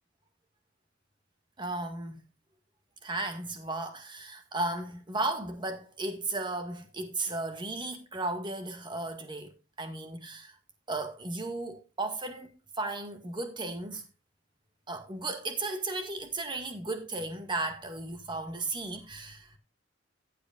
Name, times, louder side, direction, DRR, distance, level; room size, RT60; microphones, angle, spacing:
voice 1, 1.6-2.2 3.0-10.6 10.9-14.0 14.9-19.5, right 2 dB, 25° right, 1.9 m, -35 dB
14.5 x 8.4 x 2.5 m
head